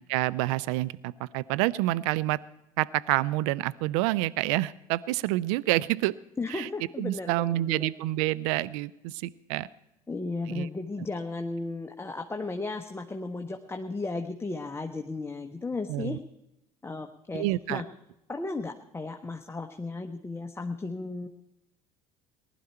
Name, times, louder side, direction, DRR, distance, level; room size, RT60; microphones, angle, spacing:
voice 1, 0.1-2.4 2.8-6.1 6.5-6.7 7.0-9.7 10.5-10.7 15.9-16.2 17.3-17.8, right 17 dB, 65° right, 18 dB, 0.5 m, -28 dB
voice 2, 6.4-7.9 10.1-16.2 16.8-17.8 18.3-21.3, left 3 dB, 15° left, 4 dB, 1.0 m, -35 dB
19.5 x 11.0 x 4.4 m, 0.89 s
figure-of-eight pair, 60°, 19 cm